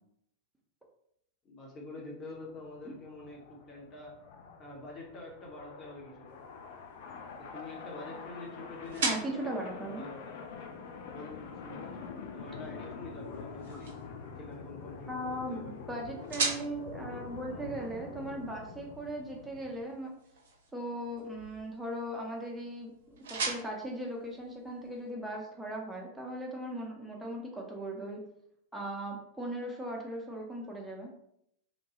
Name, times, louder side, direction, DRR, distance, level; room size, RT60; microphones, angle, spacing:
voice 1, 1.4-4.2 4.6-6.5 7.4-10.4 11.1-12.0 12.3-14.0 14.4-15.2 15.5-15.8, left 2 dB, 30° left, -1 dB, 0.9 m, -46 dB
sound 1, 2.3-19.8, left 5 dB, 50° left, 0.3 m, -46 dB
sound 2, 6.3-25.1, right 4 dB, 60° right, 0.6 m, -42 dB
voice 2, 9.0-10.0 15.1-20.1 20.7-28.2 28.7-31.1, right 1 dB, 5° right, -1 dB, 0.7 m, -38 dB
2.8 x 2.2 x 2.9 m, 0.74 s
figure-of-eight pair, 90°, 0 cm